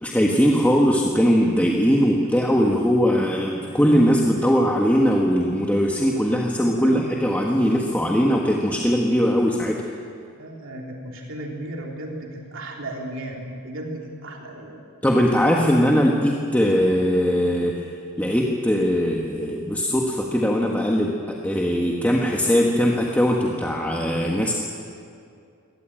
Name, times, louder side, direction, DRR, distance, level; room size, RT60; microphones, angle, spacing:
voice 1, 0.0-9.8 15.0-17.7 18.2-24.5, equal, 5° left, -1 dB, 1.6 m, -20 dB
voice 2, 10.4-14.8, right 1 dB, 60° right, 0 dB, 3.6 m, -34 dB
24.5 x 18.5 x 8.9 m, 2.4 s
head